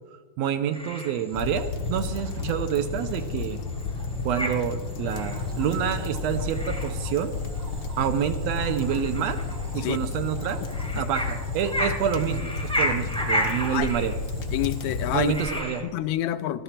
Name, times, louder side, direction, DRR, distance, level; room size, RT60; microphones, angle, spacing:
voice 1, 0.4-3.6 4.2-7.4 8.0-9.4 9.7-10.6 10.9-14.1 15.1-15.8, right 9 dB, 75° right, 9 dB, 1.7 m, -28 dB
sound 1, 0.7-15.8, equal, 5° left, 0.7 m, -34 dB
sound 2, 1.3-15.2, left 4 dB, 60° left, 1.2 m, -32 dB
Cricket / Frog, 5.1-15.6, right 3 dB, 55° right, 0.7 m, -43 dB
voice 2, 14.5-15.3 15.8-16.6, left 13 dB, 80° left, 13 dB, 1.9 m, -28 dB
15.5 x 12.5 x 4.4 m, 1.4 s
omnidirectional pair, 3.3 m